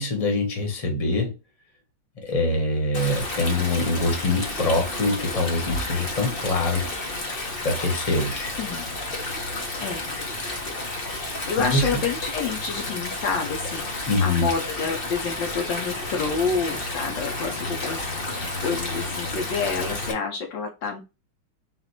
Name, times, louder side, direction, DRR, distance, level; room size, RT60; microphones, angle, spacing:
voice 1, 0.0-1.3 2.2-6.9 7.6-8.5 11.6-12.0 14.1-14.5, left 2 dB, 20° left, 1.1 m, -24 dB
Stream, 2.9-20.1, left 2 dB, 50° left, 0.7 m, -31 dB
voice 2, 11.5-21.0, left 5 dB, 70° left, 1.3 m, -28 dB
4.1 x 2.5 x 4.2 m
omnidirectional pair, 2.3 m